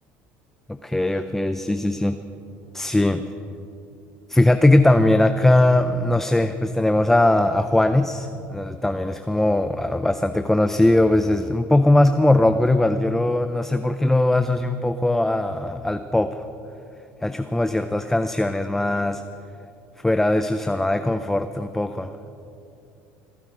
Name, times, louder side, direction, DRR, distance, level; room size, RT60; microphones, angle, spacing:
voice 1, 0.8-2.2 2.7-3.3 4.3-16.4 17.2-19.2 20.0-22.1, left 1 dB, 5° left, 9 dB, 0.5 m, -20 dB
25.5 x 8.5 x 5.0 m, 2.6 s
supercardioid pair, 115°, 6 cm